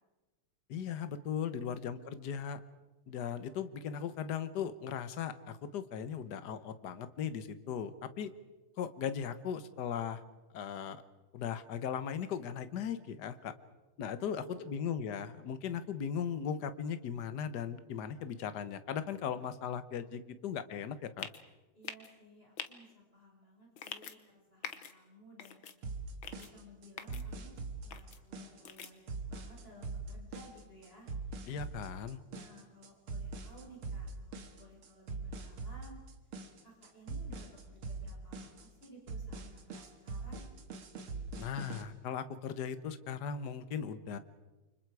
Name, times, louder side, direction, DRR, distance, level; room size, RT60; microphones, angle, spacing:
voice 1, 0.7-2.6 3.1-8.3 8.8-10.2 10.5-11.0 11.3-13.5 14.0-21.3 31.5-32.2 41.4-44.2, left 7 dB, 55° left, 12 dB, 1.5 m, -38 dB
voice 2, 1.4-2.2 14.1-14.7 21.7-25.6 26.2-31.1 32.3-36.0 36.6-40.5, equal, 25° left, -2 dB, 5.7 m, -57 dB
sound 1, 21.2-21.4 21.8-22.1 22.6-22.7 23.8-24.2 24.6-24.9 25.4-25.8 26.2-26.5 27.0-27.2 27.9-28.2 28.7-28.9, left 8 dB, 70° left, 2.1 m, -43 dB
sound 2, 25.8-41.8, right 3 dB, 85° right, 2.6 m, -43 dB
29.0 x 25.0 x 4.8 m, 1.1 s
omnidirectional pair, 2.3 m